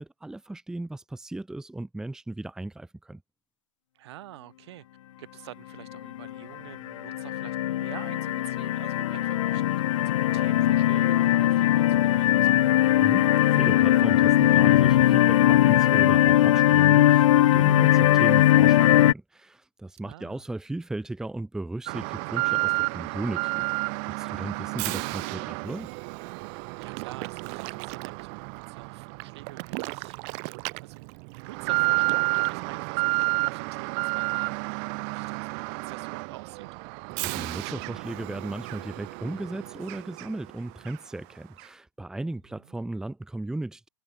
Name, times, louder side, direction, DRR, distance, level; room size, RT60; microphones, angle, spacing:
voice 1, 0.0-3.2 13.0-23.7 24.2-25.9 37.1-43.9, right 2 dB, 5° right, 2.0 m, -36 dB
voice 2, 3.9-4.8 5.2-9.6 9.9-10.0 10.3-12.7 20.0-20.5 26.4-36.7 42.5-42.7, right 15 dB, 55° right, 8.0 m, -47 dB
sound 1, 5.9-6.4 6.8-19.1, left 13 dB, 75° left, 0.4 m, -20 dB
Alarm, 21.9-40.5 40.9-41.0 41.6-41.7, right 40 dB or more, 35° right, 1.2 m, -31 dB
hypercardioid pair, 150°, 16 cm